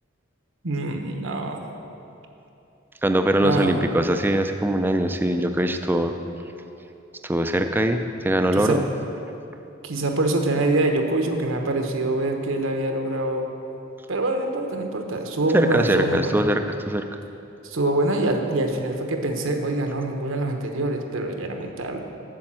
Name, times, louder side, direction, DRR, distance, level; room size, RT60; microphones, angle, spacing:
voice 1, 0.6-1.7 3.4-3.8 8.5-8.8 9.8-13.5 14.1-16.4 17.6-22.0, right 2 dB, 70° right, 4 dB, 1.0 m, -25 dB
voice 2, 3.0-6.1 7.2-8.8 15.5-17.0, right 1 dB, 10° right, 7 dB, 0.4 m, -22 dB
8.8 x 7.1 x 7.5 m, 2.9 s
head